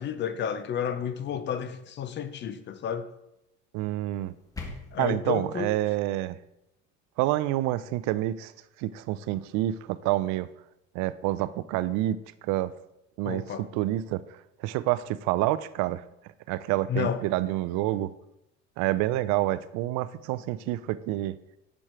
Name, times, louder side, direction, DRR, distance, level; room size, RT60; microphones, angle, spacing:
voice 1, 0.0-3.1 4.9-5.7 13.2-13.6 16.9-17.2, left 8 dB, 35° left, 0.6 m, -31 dB
voice 2, 3.7-4.3 5.0-6.4 7.2-8.5 8.8-10.5 10.9-12.7 13.2-13.4 13.7-14.2 14.6-16.0 16.5-18.1 18.8-21.4, right 15 dB, 60° right, 0.4 m, -28 dB
sound 1, 4.1-5.1, left 3 dB, 10° left, 1.3 m, -41 dB
6.3 x 4.7 x 4.3 m
supercardioid pair, 105°, 32 cm